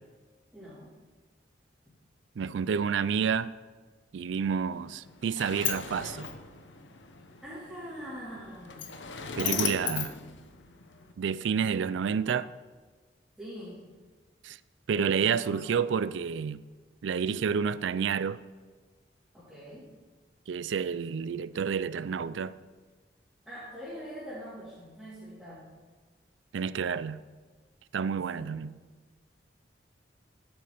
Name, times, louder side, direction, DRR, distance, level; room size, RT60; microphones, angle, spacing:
voice 1, 0.5-0.9 7.4-8.9 9.3-10.3 13.4-13.8 15.0-15.9 19.3-19.9 23.4-25.6 28.1-28.6, equal, ahead, 3.4 m, -43 dB
voice 2, 2.4-3.5 4.1-6.3 9.4-10.1 11.2-12.5 14.4-14.6 14.9-16.6 17.0-18.4 20.5-22.5 26.5-27.2 27.9-28.8, right 6 dB, 85° right, 0.4 m, -29 dB
Sliding door, 4.7-11.1, left 8 dB, 85° left, 0.9 m, -37 dB
11.0 x 8.0 x 5.1 m
head